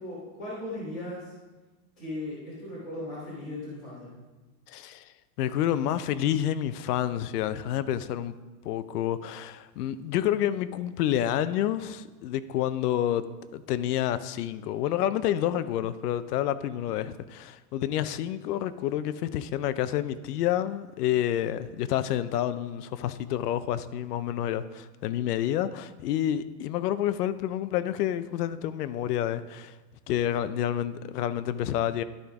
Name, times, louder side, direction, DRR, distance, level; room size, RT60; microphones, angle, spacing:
voice 1, 0.0-1.3 2.0-4.2, left 1 dB, 5° left, 0.3 m, -37 dB
voice 2, 4.7-5.0 5.4-8.3 8.6-13.2 13.5-29.7 30.1-32.0, left 11 dB, 70° left, 0.5 m, -29 dB
11.5 x 5.0 x 3.5 m
supercardioid pair, 180°, 49 cm